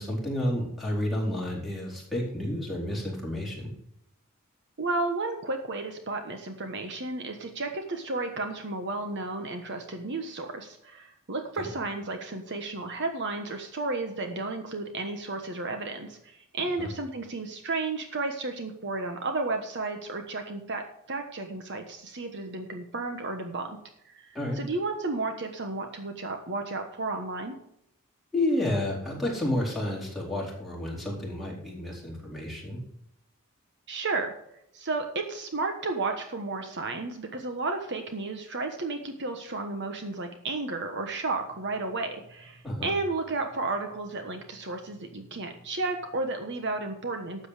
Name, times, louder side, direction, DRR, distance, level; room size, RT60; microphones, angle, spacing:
voice 1, 0.0-3.7 11.6-11.7 16.8-16.9 24.3-24.6 28.3-32.8 42.6-42.9, left 1 dB, ahead, -4 dB, 4.5 m, -30 dB
voice 2, 4.8-23.8 24.0-27.6 33.9-34.3 34.7-47.5, right 3 dB, 55° right, 5 dB, 1.2 m, -33 dB
13.0 x 8.0 x 5.0 m, 0.77 s
head